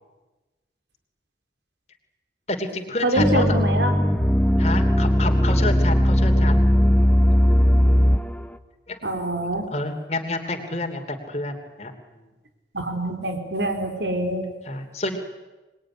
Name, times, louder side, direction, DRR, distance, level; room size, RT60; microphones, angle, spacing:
voice 1, 2.5-3.5 4.6-6.7 8.9-9.0 9.7-12.2 14.6-15.2, left 2 dB, 35° left, 4 dB, 3.0 m, -29 dB
voice 2, 3.0-3.9 9.0-9.7 12.7-14.5, right 1 dB, 80° right, 5 dB, 4.1 m, -25 dB
sound 1, 3.2-8.4, equal, 5° left, 0.9 m, -18 dB
26.0 x 21.0 x 10.0 m, 1.1 s
head